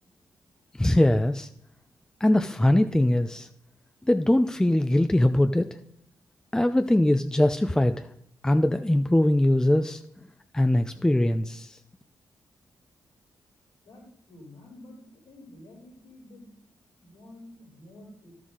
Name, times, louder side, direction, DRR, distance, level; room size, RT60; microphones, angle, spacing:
voice 1, 0.8-1.5 2.2-3.5 4.1-5.8 6.5-8.1 8.4-10.0 10.5-11.8, left 1 dB, 10° left, 8 dB, 0.4 m, -22 dB
voice 2, 13.8-16.5 17.0-18.3, left 1 dB, 85° left, -9 dB, 3.4 m, -49 dB
12.0 x 6.3 x 3.7 m, 0.70 s
supercardioid pair, 50°, 8 cm